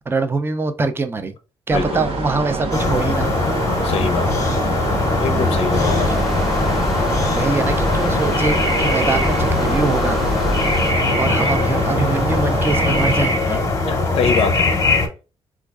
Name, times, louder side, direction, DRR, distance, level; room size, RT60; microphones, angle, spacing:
voice 1, 0.1-1.3 1.7-3.3 6.1-6.2 7.2-10.2 11.2-13.6, right 3 dB, 20° right, 0.4 m, -23 dB
voice 2, 1.7-2.0 3.8-4.4 5.2-6.3 11.4-11.6 13.9-14.7, left 5 dB, 65° left, 0.4 m, -24 dB
sound 1, 1.7-13.3, right 3 dB, 65° right, 0.8 m, -26 dB
sound 2, 2.7-15.1, left 3 dB, 30° left, 0.7 m, -20 dB
sound 3, 5.7-10.9, left 1 dB, ahead, 0.8 m, -27 dB
4.3 x 2.3 x 2.3 m
cardioid pair, 115°, 10 cm